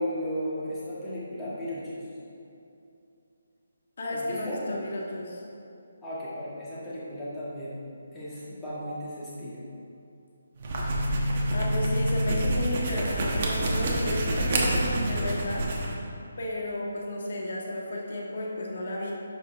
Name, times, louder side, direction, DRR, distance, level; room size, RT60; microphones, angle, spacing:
voice 1, 0.0-2.0 4.1-4.6 6.0-7.7 8.1-9.6 14.3-15.4, equal, 10° left, -11 dB, 1.9 m, -35 dB
voice 2, 4.0-5.4 11.5-15.7 16.4-19.1, left 1 dB, 60° left, -2 dB, 1.7 m, -33 dB
sound 1, 10.6-15.9, right 1 dB, 35° right, 1.2 m, -27 dB
12.0 x 4.6 x 3.6 m, 2.7 s
hypercardioid pair, 165°, 0 cm